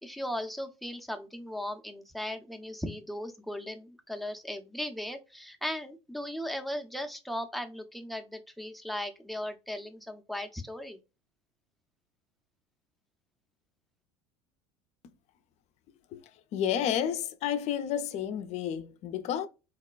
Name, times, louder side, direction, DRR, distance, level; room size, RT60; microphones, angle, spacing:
voice 1, 0.0-11.0, left 1 dB, ahead, 0.5 m, -37 dB
voice 2, 16.5-19.5, left 9 dB, 50° left, 0.5 m, -31 dB
4.0 x 2.2 x 2.2 m
hypercardioid pair, 80°, 15 cm